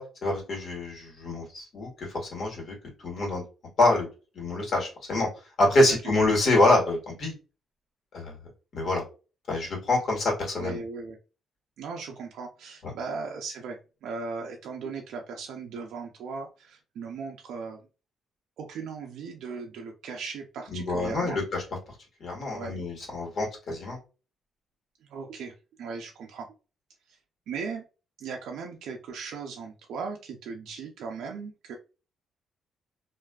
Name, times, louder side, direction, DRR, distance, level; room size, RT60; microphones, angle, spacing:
voice 1, 0.0-2.7 3.0-3.4 3.8-4.1 4.3-5.3 5.6-7.3 8.1-8.3 8.7-9.0 9.5-10.8 20.7-21.6 22.2-24.0, left 2 dB, 60° left, -1 dB, 1.4 m, -26 dB
voice 2, 10.6-11.2 11.8-17.8 18.6-21.4 22.5-22.7 25.0-26.5 27.1-27.2 27.5-27.8 28.2-31.7, right 5 dB, 80° right, 1 dB, 0.4 m, -38 dB
2.4 x 2.3 x 2.2 m, 0.33 s
cardioid pair, 90°, 0 cm